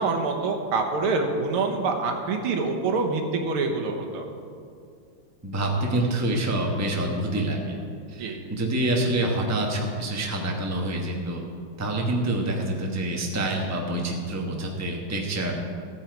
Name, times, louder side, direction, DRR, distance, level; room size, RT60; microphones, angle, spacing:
voice 1, 0.0-4.3 8.2-8.4, right 3 dB, 85° right, 2 dB, 2.0 m, -26 dB
voice 2, 5.4-7.8 8.1-11.4 11.8-15.5, right 1 dB, 10° right, 0 dB, 0.9 m, -27 dB
14.5 x 8.9 x 4.7 m, 2.3 s
omnidirectional pair, 2.3 m